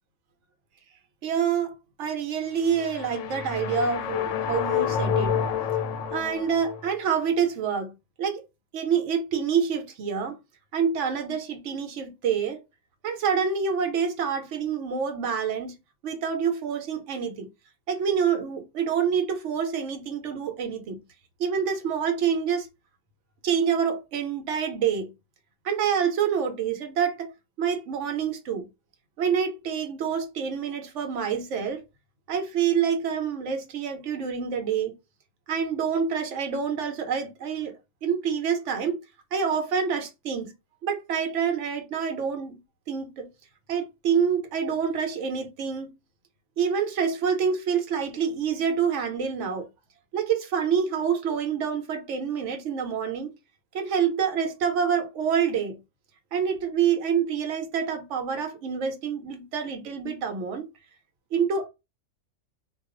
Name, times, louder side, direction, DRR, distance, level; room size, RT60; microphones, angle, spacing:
voice 1, 1.2-5.4 6.1-8.4 8.7-10.4 10.7-12.6 13.0-15.8 16.0-17.5 17.9-21.0 21.4-22.7 23.4-25.1 25.6-27.3 27.6-28.7 29.2-31.8 32.3-34.9 35.5-37.7 38.0-39.0 39.3-40.5 40.8-42.6 42.9-43.3 43.7-45.9 46.6-49.7 50.1-53.3 53.7-55.8 56.3-60.7 61.3-61.7, right 7 dB, 70° right, 1.0 m, -27 dB
sound 1, 2.6-6.9, left 8 dB, 85° left, 0.9 m, -28 dB
2.4 x 2.3 x 3.6 m
omnidirectional pair, 1.3 m